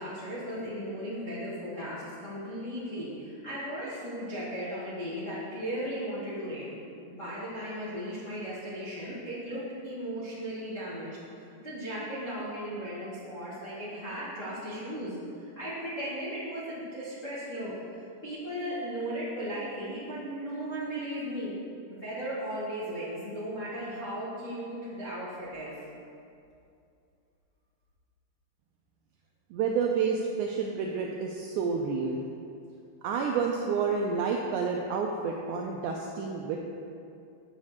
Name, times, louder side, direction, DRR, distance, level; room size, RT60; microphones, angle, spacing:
voice 1, 0.0-6.7 7.1-21.5 21.9-25.7, equal, 90° left, -10 dB, 0.6 m, -36 dB
voice 2, 29.5-32.2 33.0-36.6, right 5 dB, 90° right, 1 dB, 1.7 m, -29 dB
8.7 x 4.1 x 6.5 m, 2.5 s
omnidirectional pair, 4.1 m